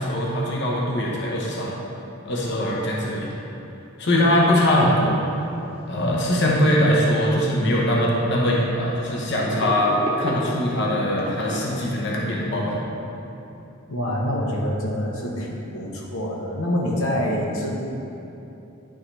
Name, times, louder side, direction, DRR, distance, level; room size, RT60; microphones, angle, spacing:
voice 1, 0.0-1.8 2.2-3.3 4.0-5.2 5.9-12.8, left 1 dB, 50° left, -3 dB, 1.0 m, -22 dB
sound 1, 5.3-5.4 5.8-5.9 6.7-7.4 8.3-8.6 9.4-11.6, equal, 25° right, 0.8 m, -32 dB
voice 2, 6.0-6.5 13.9-17.7, equal, 75° left, -2 dB, 1.0 m, -26 dB
9.9 x 5.6 x 3.2 m, 2.9 s
head